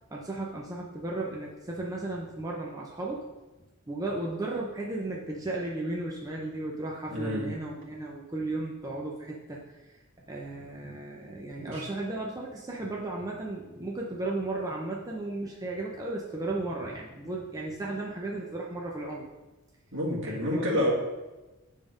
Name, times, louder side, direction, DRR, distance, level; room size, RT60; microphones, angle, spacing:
voice 1, 0.1-3.2 3.9-9.9 10.3-19.3 20.2-20.8, right 2 dB, 15° right, -3 dB, 0.6 m, -35 dB
voice 2, 7.1-7.4 11.6-11.9 19.9-20.9, left 1 dB, 60° right, -3 dB, 1.7 m, -29 dB
7.5 x 3.6 x 5.0 m, 1.1 s
head